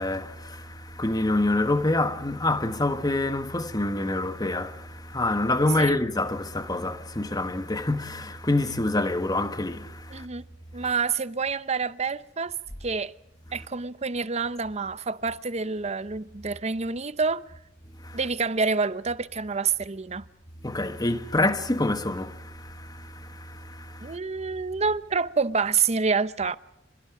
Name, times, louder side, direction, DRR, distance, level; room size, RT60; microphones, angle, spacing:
voice 1, 0.0-10.2 18.0-18.2 20.6-24.2, left 2 dB, 20° left, 1.4 m, -27 dB
voice 2, 10.1-10.4 10.7-12.5 12.8-13.1 13.5-17.4 18.1-20.2 24.0-26.6, right 5 dB, 35° right, 0.8 m, -27 dB
27.0 x 26.5 x 4.9 m
head